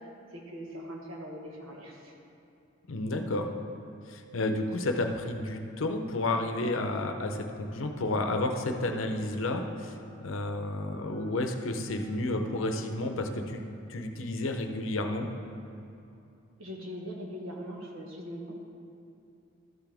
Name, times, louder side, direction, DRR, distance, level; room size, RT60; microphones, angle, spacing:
voice 1, 0.3-2.1 16.6-18.5, equal, 80° right, -1 dB, 1.4 m, -41 dB
voice 2, 2.9-3.5 4.1-13.6 13.9-15.3, left 2 dB, 70° left, 5 dB, 0.7 m, -31 dB
Telephone, 8.8-13.6 14.2-14.3 14.6-14.8 15.2-15.5 15.8-15.9, right 3 dB, 30° left, 1.1 m, -54 dB
13.0 x 6.0 x 3.4 m, 2.7 s
head